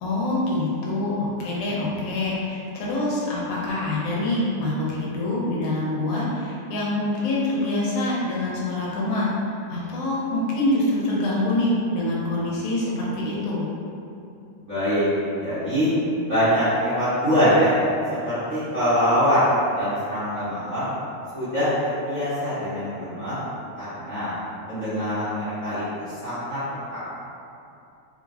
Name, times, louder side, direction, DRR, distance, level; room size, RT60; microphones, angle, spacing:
voice 1, 0.0-13.7, left 1 dB, 85° left, -5 dB, 2.2 m, -25 dB
voice 2, 14.6-15.1 15.3-15.9 16.3-17.7 18.2-20.9 21.3-23.4 23.7-24.3 24.7-26.6 26.9-27.0, equal, 35° right, -17 dB, 1.3 m, -23 dB
5.0 x 3.2 x 2.6 m, 2.7 s
omnidirectional pair, 3.4 m